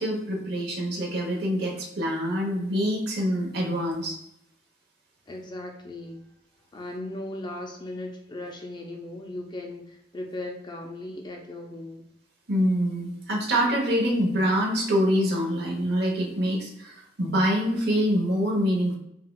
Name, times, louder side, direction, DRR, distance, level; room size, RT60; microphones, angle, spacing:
voice 1, 0.0-4.2 12.5-19.0, equal, 60° right, -1 dB, 1.0 m, -25 dB
voice 2, 5.3-6.3 6.7-12.0, left 1 dB, 25° left, 1 dB, 0.5 m, -37 dB
5.6 x 2.3 x 2.3 m, 0.78 s
head